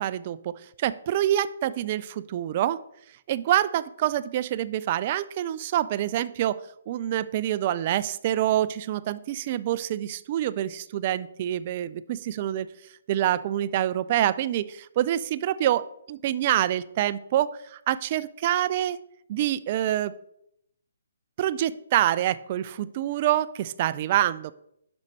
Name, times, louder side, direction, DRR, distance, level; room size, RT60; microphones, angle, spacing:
voice 1, 0.0-2.8 3.3-6.6 6.9-12.7 13.1-19.0 19.3-20.1 21.4-24.5, right 12 dB, 40° right, 16 dB, 0.4 m, -26 dB
10.5 x 6.1 x 3.2 m, 0.76 s
figure-of-eight pair, 135°, 0 cm